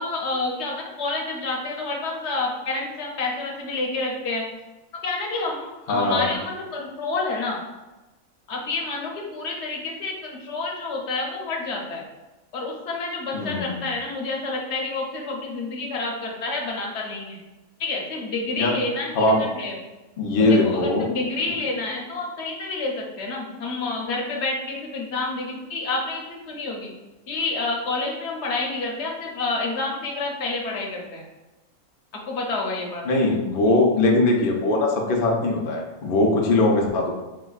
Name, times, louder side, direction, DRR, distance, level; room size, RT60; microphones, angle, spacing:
voice 1, 0.0-4.4 5.0-7.6 8.5-12.0 12.5-17.4 17.8-19.7 20.4-26.9 27.3-31.2 32.3-33.0, left 3 dB, 60° left, -1 dB, 0.9 m, -29 dB
voice 2, 5.9-6.3 13.3-13.8 18.6-18.8 19.1-19.4 20.2-21.0 33.1-37.1, left 2 dB, 85° left, 1 dB, 0.4 m, -21 dB
4.9 x 2.1 x 2.3 m, 1.1 s
omnidirectional pair, 1.6 m